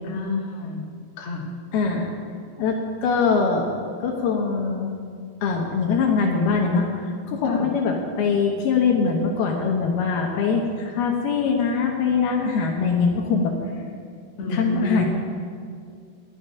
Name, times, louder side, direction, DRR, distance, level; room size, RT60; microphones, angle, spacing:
voice 1, 0.0-0.8 1.2-1.5 7.5-7.7 14.4-15.1, left 2 dB, 50° left, -3 dB, 2.4 m, -29 dB
voice 2, 1.7-2.1 2.6-5.0 5.4-13.5 14.5-15.1, left 5 dB, 75° left, 0 dB, 2.9 m, -22 dB
12.5 x 11.0 x 5.7 m, 2.1 s
omnidirectional pair, 4.7 m